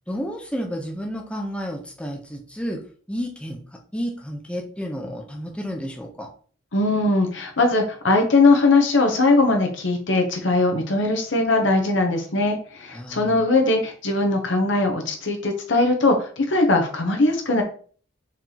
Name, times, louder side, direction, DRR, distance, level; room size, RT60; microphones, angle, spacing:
voice 1, 0.1-2.8 3.1-3.6 3.9-6.3 12.9-13.4, equal, 5° left, 0 dB, 0.7 m, -31 dB
voice 2, 6.7-17.6, left 2 dB, 70° left, 3 dB, 0.9 m, -20 dB
4.6 x 2.9 x 3.9 m, 0.44 s
head